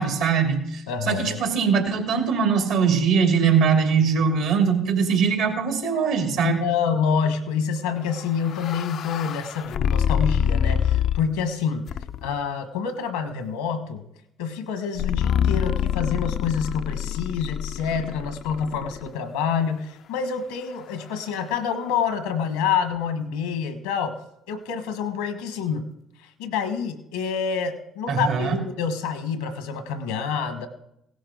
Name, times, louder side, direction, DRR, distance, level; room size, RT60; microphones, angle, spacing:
voice 1, 0.0-6.6 28.1-28.6, right 6 dB, 80° right, 3 dB, 2.7 m, -21 dB
voice 2, 0.9-1.4 6.4-11.9 12.2-14.1 14.4-24.2 24.5-25.9 26.2-30.7, left 6 dB, 85° left, 10 dB, 1.3 m, -27 dB
sound 1, 8.1-11.4 11.9-12.4 15.0-19.1, left 8 dB, 60° left, 0.4 m, -26 dB
17.0 x 10.5 x 3.9 m, 0.80 s
hypercardioid pair, 60°, 0 cm